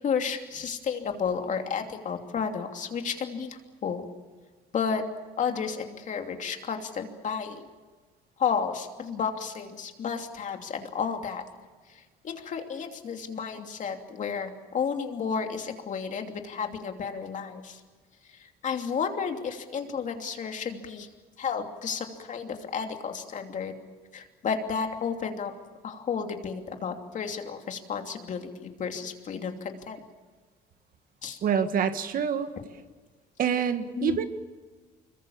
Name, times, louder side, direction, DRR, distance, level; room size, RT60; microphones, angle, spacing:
voice 1, 0.0-4.1 4.7-5.1 5.4-7.7 8.4-11.4 11.9-17.8 18.3-21.1 21.4-23.7 24.1-25.5 25.8-30.0 31.2-31.4 32.6-32.7 34.0-34.2, left 6 dB, 50° left, 4 dB, 2.9 m, -32 dB
voice 2, 31.4-32.5 33.4-34.3, right 7 dB, 55° right, 9 dB, 1.8 m, -26 dB
25.5 x 22.5 x 7.2 m, 1.4 s
cardioid pair, 110°, 17 cm